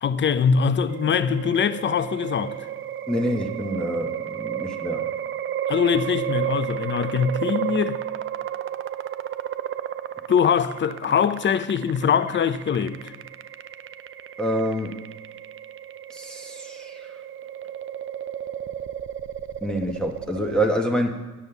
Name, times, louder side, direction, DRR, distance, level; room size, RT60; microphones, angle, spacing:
voice 1, 0.0-2.6 5.7-8.0 10.3-13.1, left 7 dB, 40° left, 0.6 m, -22 dB
sound 1, 0.9-20.7, right 10 dB, 45° right, 0.5 m, -33 dB
voice 2, 3.1-5.1 14.4-15.0 16.1-17.1 19.6-21.1, equal, 5° left, 1.0 m, -26 dB
9.9 x 7.3 x 6.7 m
cardioid pair, 90°, 30 cm